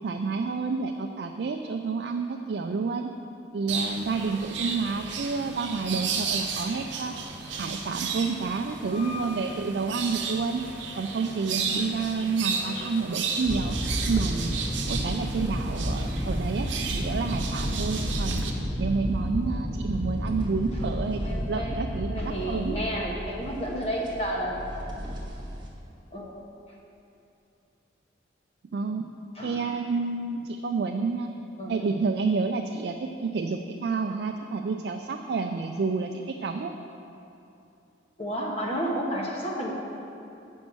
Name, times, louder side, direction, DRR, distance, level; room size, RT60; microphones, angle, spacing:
voice 1, 0.0-3.1 3.5-7.1 7.6-10.6 11.0-13.8 14.1-14.6 14.9-18.4 18.8-21.2 21.5-22.8 28.7-29.1 29.4-31.3 31.7-36.7, right 4 dB, 60° right, 4 dB, 0.4 m, -29 dB
sound 1, 3.7-18.5, right 5 dB, 85° right, 0.8 m, -33 dB
voice 2, 8.8-9.5 20.7-20.8 21.2-21.8 22.1-24.7 26.1-26.3 29.3-29.6 31.6-31.7 38.2-39.7, equal, 30° left, -2 dB, 1.1 m, -32 dB
sound 2, 13.5-25.7, equal, 25° right, 1.1 m, -31 dB
8.4 x 5.3 x 6.1 m, 2.7 s
head